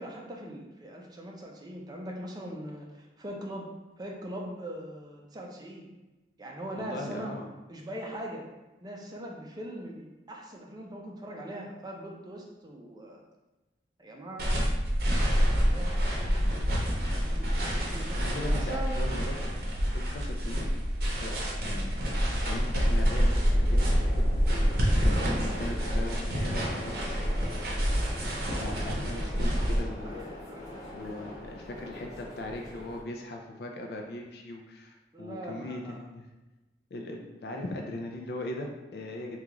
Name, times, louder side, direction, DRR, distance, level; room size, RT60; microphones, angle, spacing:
voice 1, 0.0-3.7 4.0-5.9 6.4-7.3 7.7-8.4 8.8-13.2 14.0-14.7 15.1-18.2 18.5-19.1 23.2-23.3 28.3-28.7 29.1-29.2 30.0-31.0 35.1-36.0, right 1 dB, 20° right, 0 dB, 0.5 m, -41 dB
voice 2, 6.7-7.5 18.2-19.4 19.9-20.7 21.0-22.2 22.5-24.3 25.0-27.2 28.6-30.1 30.9-36.3 36.9-39.4, left 1 dB, 60° left, 1 dB, 0.4 m, -39 dB
sound 1, 14.4-29.8, equal, 55° right, 0.7 m, -27 dB
sound 2, 23.4-33.0, left 1 dB, 20° left, 0.7 m, -43 dB
3.1 x 2.3 x 3.7 m, 1.1 s
head